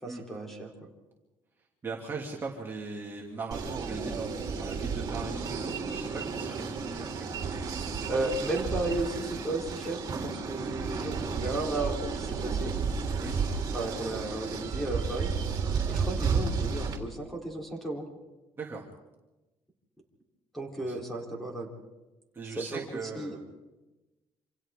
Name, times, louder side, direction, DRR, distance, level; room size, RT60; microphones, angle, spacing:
voice 1, 0.0-0.9 8.1-12.7 13.7-15.3 15.9-18.0 20.5-21.7 22.6-22.8 23.2-23.4, right 2 dB, ahead, 0 dB, 3.7 m, -34 dB
voice 2, 1.8-7.5 13.2-13.4 18.6-18.9 20.8-20.9 22.3-23.4, right 4 dB, 20° right, -2 dB, 2.6 m, -39 dB
sound 1, 3.5-17.0, right 5 dB, 40° right, 3.6 m, -32 dB
28.0 x 26.5 x 3.7 m, 1.1 s
cardioid pair, 165°, 10 cm